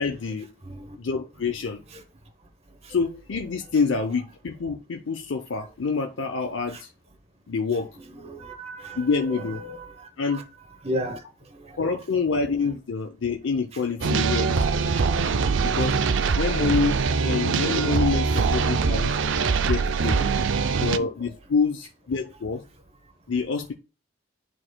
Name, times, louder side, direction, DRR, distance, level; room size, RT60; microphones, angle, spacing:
voice 1, 0.0-0.5 1.0-1.8 2.9-6.9 7.5-7.9 9.0-9.8 10.2-10.4 11.8-14.6 15.6-16.0 16.4-19.1 19.6-20.3 20.8-22.6 23.3-23.7, left 4 dB, 80° left, 0.6 m, -27 dB
voice 2, 0.6-1.0 1.9-2.0 2.8-2.9 6.7-6.8 7.9-10.4 10.8-11.2 11.5-11.8 13.7-13.8 15.5-15.6 16.2-16.5 18.3-18.4 18.7-18.8 19.3-19.5 19.8-19.9 20.6-21.1, right 1 dB, 30° right, 0.9 m, -36 dB
sound 1, 14.0-21.0, right 5 dB, 75° right, 0.5 m, -23 dB
11.0 x 4.4 x 2.2 m
head